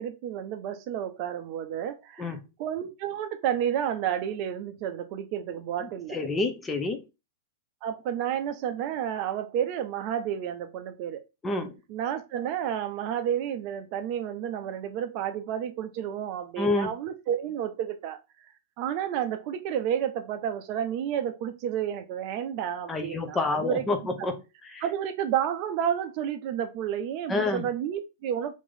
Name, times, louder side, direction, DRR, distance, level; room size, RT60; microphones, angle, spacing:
voice 1, 0.0-6.2 7.8-11.2 11.9-18.2 18.8-23.8 24.8-28.5, right 9 dB, 40° right, 0.6 m, -31 dB
voice 2, 6.1-7.0 11.4-11.8 16.6-16.9 22.9-24.4 24.7-24.8 27.3-27.7, left 3 dB, 15° left, 0.7 m, -28 dB
3.6 x 3.1 x 3.9 m
figure-of-eight pair, 100°, 0 cm